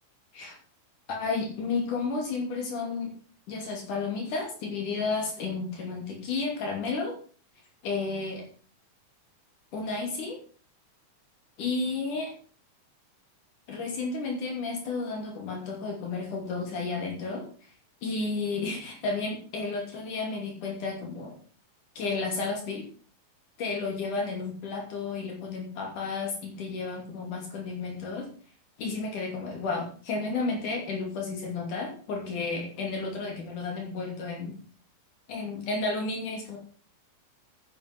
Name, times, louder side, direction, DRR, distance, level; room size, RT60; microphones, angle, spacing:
voice 1, 1.1-3.2 3.5-7.2 7.8-8.4 9.7-10.4 11.6-12.3 13.7-17.7 18.0-21.4 22.0-22.9 23.6-28.3 28.8-34.5 35.3-36.6, left 4 dB, 70° left, 1 dB, 4.2 m, -32 dB
10.5 x 9.6 x 6.0 m, 0.42 s
omnidirectional pair, 3.8 m